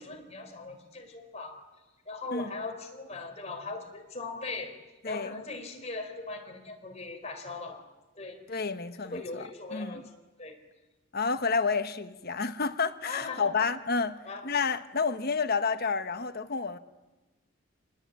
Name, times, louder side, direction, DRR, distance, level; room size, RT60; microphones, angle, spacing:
voice 1, 0.0-1.6 2.1-4.7 5.0-7.8 8.2-8.4 9.1-10.0 10.4-10.6 13.0-13.5 14.3-14.5, left 3 dB, 30° left, 4.1 m, -39 dB
voice 2, 5.0-5.4 8.5-10.0 11.1-16.8, left 5 dB, 45° left, 1.2 m, -30 dB
28.0 x 20.0 x 9.5 m
head